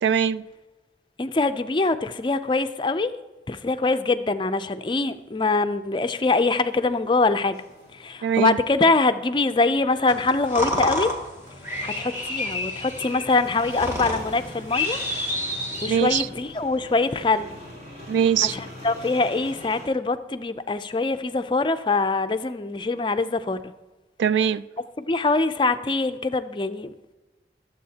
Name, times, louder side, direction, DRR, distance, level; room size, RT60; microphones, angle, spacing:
voice 1, 0.0-0.4 8.2-8.6 15.8-16.3 18.1-18.6 24.2-24.6, right 8 dB, 90° right, 0.3 m, -21 dB
voice 2, 1.2-3.1 3.5-7.6 7.9-11.1 11.8-15.0 15.8-17.5 18.4-23.6 25.0-27.1, left 3 dB, 25° left, 0.4 m, -23 dB
sound 1, 6.6-19.9, left 1 dB, 50° right, 3.7 m, -44 dB
sound 2, 10.1-16.3, left 1 dB, 15° right, 1.7 m, -29 dB
20.5 x 7.8 x 2.8 m
head